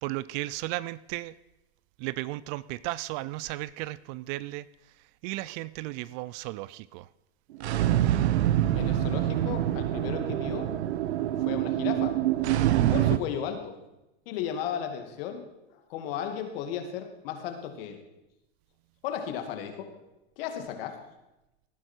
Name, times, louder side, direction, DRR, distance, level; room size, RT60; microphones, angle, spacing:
voice 1, 0.0-1.3 2.0-4.7 5.2-7.1, right 18 dB, 40° right, 20 dB, 0.4 m, -35 dB
sound 1, 7.5-13.2, right 13 dB, 80° right, 0.8 m, -25 dB
voice 2, 8.3-10.7 11.0-12.2 12.9-13.7 14.3-18.0 19.0-20.0 20.4-21.0, left 8 dB, 60° left, 6 dB, 2.4 m, -35 dB
18.5 x 9.7 x 4.6 m, 0.94 s
hypercardioid pair, 115°, 33 cm